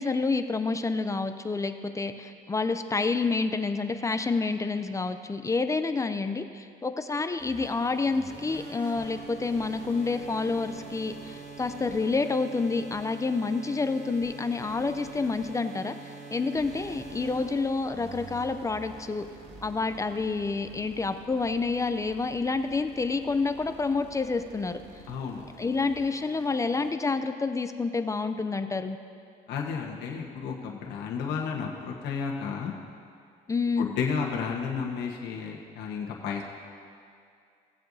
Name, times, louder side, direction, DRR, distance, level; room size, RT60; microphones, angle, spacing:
voice 1, 0.0-19.2 19.6-24.8 25.6-29.0 33.5-33.9, left 4 dB, 20° left, 9 dB, 0.4 m, -28 dB
sound 1, 7.4-26.9, right 3 dB, 80° right, 1.8 m, -45 dB
voice 2, 25.1-25.4 29.5-32.7 33.8-36.4, left 6 dB, 80° left, -1 dB, 1.2 m, -32 dB
17.5 x 7.6 x 2.7 m, 2.3 s
cardioid pair, 110°, 17 cm